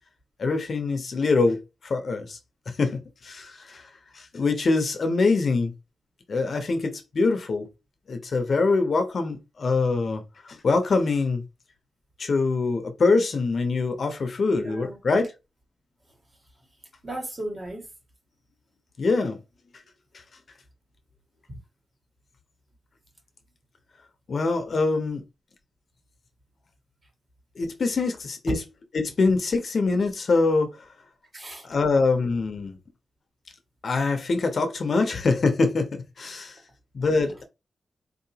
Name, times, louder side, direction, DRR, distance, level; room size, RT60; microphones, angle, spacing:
voice 1, 0.4-2.4 2.7-3.9 4.1-5.7 6.3-7.7 8.1-11.4 12.2-15.3 19.0-19.4 24.3-25.2 27.6-28.6 28.9-30.7 31.6-32.8 33.8-36.5 36.9-37.4, left 3 dB, 50° left, 0.7 m, -24 dB
voice 2, 14.5-15.0 17.0-17.9 21.5-21.6 31.3-31.7, right 1 dB, 30° right, 1.6 m, -35 dB
4.2 x 2.9 x 2.8 m
wide cardioid pair, 150°, 0 cm